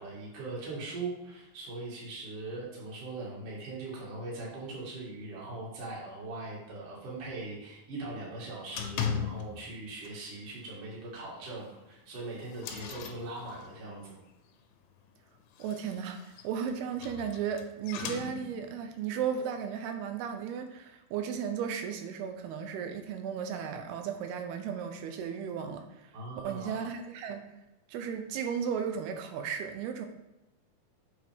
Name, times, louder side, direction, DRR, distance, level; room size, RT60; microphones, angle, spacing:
voice 1, 0.0-14.2 26.1-26.8, right 2 dB, 45° right, -5 dB, 2.4 m, -40 dB
sound 1, 8.7-9.8 10.0-10.4 10.7-10.8 11.2-11.3 12.0-13.9 15.4-18.8, left 7 dB, 85° left, 2.5 m, -38 dB
voice 2, 15.6-26.1 26.4-27.4 27.9-30.1, right 7 dB, 90° right, 6 dB, 2.7 m, -35 dB
7.2 x 4.5 x 3.5 m, 0.97 s
omnidirectional pair, 4.5 m